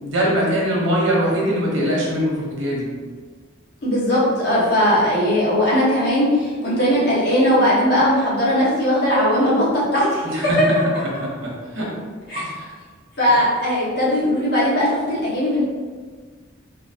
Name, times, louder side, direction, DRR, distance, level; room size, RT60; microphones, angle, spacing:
voice 1, 0.0-2.9 10.3-10.6 11.4-11.9 12.3-12.5, equal, 75° right, -4 dB, 1.1 m, -22 dB
voice 2, 3.8-10.2 10.6-10.7 10.9-11.0 12.3-12.5 13.2-15.6, equal, 55° left, -8 dB, 1.3 m, -19 dB
3.8 x 2.7 x 2.9 m, 1.5 s
head